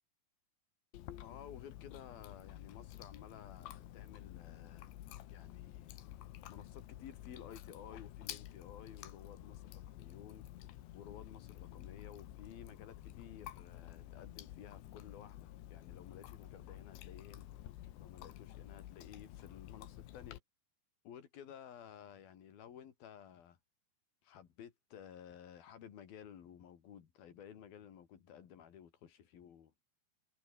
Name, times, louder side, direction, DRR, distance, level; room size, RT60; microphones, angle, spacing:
Chewing mastication, 0.9-20.4, left 13 dB, 85° left, 3.9 m, -51 dB
voice 1, 1.2-4.9 5.3-6.0 6.5-10.5 10.9-17.6 18.0-20.4 21.0-23.6 24.2-29.7, left 9 dB, 60° left, 4.1 m, -54 dB
omnidirectional pair, 5.0 m